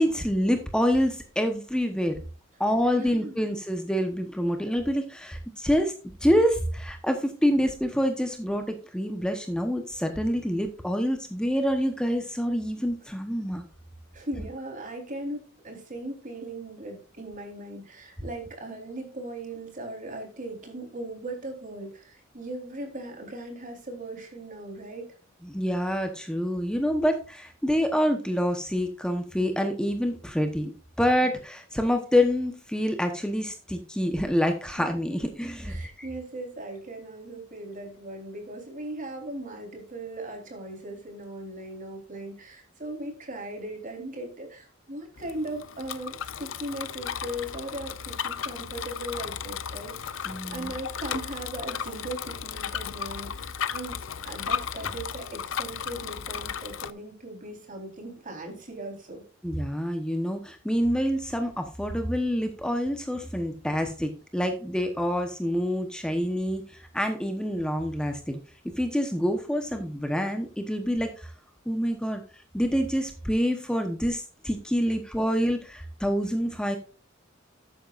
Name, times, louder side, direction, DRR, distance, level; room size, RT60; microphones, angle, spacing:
voice 1, 0.0-2.2 2.6-5.9 6.2-8.6 8.9-13.6 25.4-30.7 31.0-36.1 50.2-50.7 59.4-68.4 68.8-71.3 71.7-72.2 72.5-76.8, equal, 5° left, 5 dB, 1.0 m, -27 dB
voice 2, 3.0-3.4 14.1-25.1 31.2-31.3 34.6-34.7 35.7-54.0 54.2-59.2, right 1 dB, 40° right, 3 dB, 4.0 m, -38 dB
Bicycle, 45.2-56.9, left 7 dB, 80° left, 0.7 m, -35 dB
12.5 x 9.1 x 2.5 m, 0.37 s
head